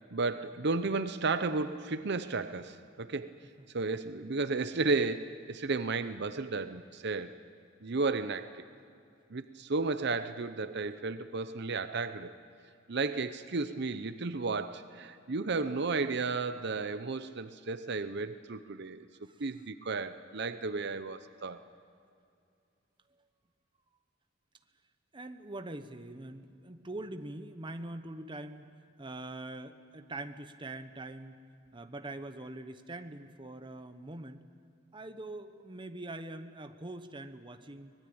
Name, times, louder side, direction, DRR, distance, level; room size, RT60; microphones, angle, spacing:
voice 1, 0.1-3.3 3.7-7.3 7.8-8.6 9.3-12.3 12.9-19.1 19.4-21.6, right 3 dB, 60° right, 11 dB, 0.8 m, -33 dB
voice 2, 25.1-28.7 29.0-31.4 31.7-34.4 34.9-37.9, right 2 dB, 25° right, 8 dB, 1.1 m, -43 dB
24.0 x 20.0 x 8.8 m, 2.4 s
head